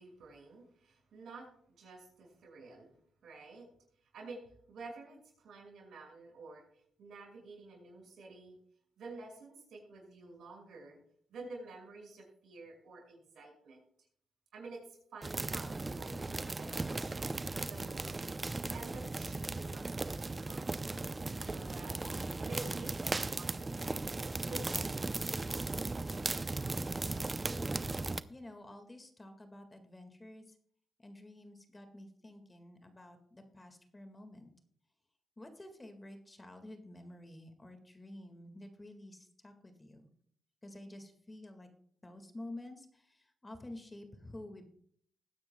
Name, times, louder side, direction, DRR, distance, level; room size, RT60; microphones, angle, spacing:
voice 1, 0.0-1.5 1.8-2.9 3.2-3.7 4.1-8.6 9.0-11.0 11.3-13.8 14.5-21.0 21.4-22.0 22.4-24.1 24.4-26.4, right 3 dB, 75° right, 0 dB, 6.0 m, -50 dB
sound 1, 15.2-28.2, right 3 dB, 30° right, 0.6 m, -37 dB
voice 2, 27.3-28.0 28.3-30.6 31.0-34.5 35.4-40.1 40.6-41.7 42.0-44.7, left 1 dB, 25° left, 6 dB, 1.9 m, -50 dB
20.5 x 9.5 x 2.3 m, 0.63 s
supercardioid pair, 60°, 0 cm